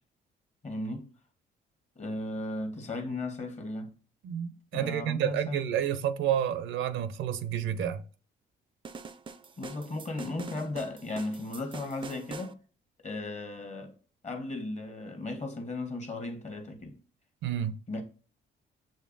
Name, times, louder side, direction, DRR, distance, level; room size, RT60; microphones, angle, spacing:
voice 1, 0.6-1.0 2.0-3.9 4.7-5.6 9.6-12.6 13.0-13.9 14.2-17.0 17.9-18.0, left 2 dB, 35° left, 1.1 m, -36 dB
voice 2, 4.2-8.0 17.4-17.8, right 10 dB, 80° right, 0.5 m, -30 dB
sound 1, 8.8-12.5, right 4 dB, 25° right, 0.4 m, -44 dB
6.5 x 3.2 x 2.5 m
cardioid pair, 90°, 20 cm